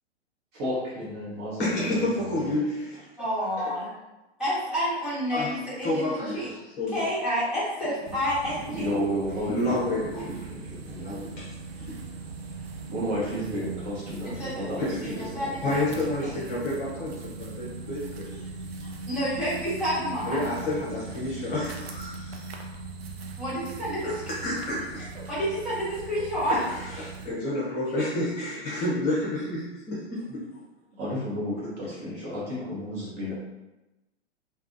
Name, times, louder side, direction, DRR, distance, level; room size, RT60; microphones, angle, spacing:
voice 1, 0.5-2.5 8.7-11.2 12.9-15.7 16.0-16.1 30.9-33.3, equal, 30° right, -7 dB, 0.9 m, -32 dB
voice 2, 1.6-3.1 3.6-3.8 5.3-5.6 5.8-6.4 6.8-7.1 9.5-10.3 10.9-11.5 11.9-12.0 14.9-15.0 15.6-18.5 20.2-22.6 24.0-25.0 26.5-30.4, left 1 dB, 25° left, -6 dB, 0.8 m, -30 dB
voice 3, 3.2-3.9 4.4-6.5 6.9-8.9 14.2-16.6 19.1-20.4 23.4-24.2 25.3-26.6, equal, 5° right, -11 dB, 1.3 m, -29 dB
sound 1, 8.0-27.3, right 3 dB, 65° right, 0.5 m, -40 dB
3.4 x 2.2 x 2.5 m, 1.0 s
figure-of-eight pair, 110°, 33 cm